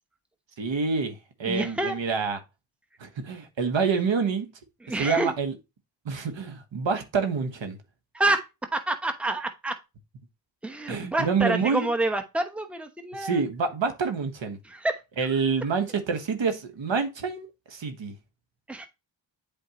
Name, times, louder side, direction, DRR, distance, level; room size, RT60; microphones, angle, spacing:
voice 1, 0.6-2.4 3.0-4.5 5.0-5.5 6.0-7.8 10.9-11.9 13.2-14.6 15.2-18.1, right 5 dB, 65° right, 1.4 m, -27 dB
voice 2, 1.4-2.0 4.8-5.3 8.1-9.8 10.6-13.4 14.6-15.5 18.7-18.9, right 2 dB, 5° right, 1.0 m, -28 dB
8.0 x 4.3 x 3.0 m
cardioid pair, 60°, 48 cm